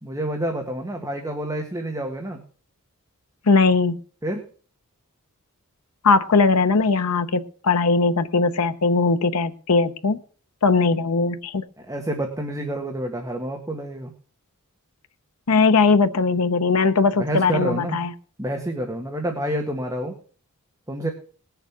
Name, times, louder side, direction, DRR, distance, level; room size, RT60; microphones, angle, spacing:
voice 1, 0.0-2.4 4.2-4.4 11.8-14.1 17.2-18.0 18.4-20.2 20.9-21.1, right 1 dB, 15° right, 2 dB, 1.6 m, -28 dB
voice 2, 3.5-4.0 6.0-10.2 10.6-11.6 15.5-18.1, left 4 dB, 85° left, 9 dB, 0.8 m, -19 dB
19.5 x 7.0 x 6.0 m, 0.43 s
head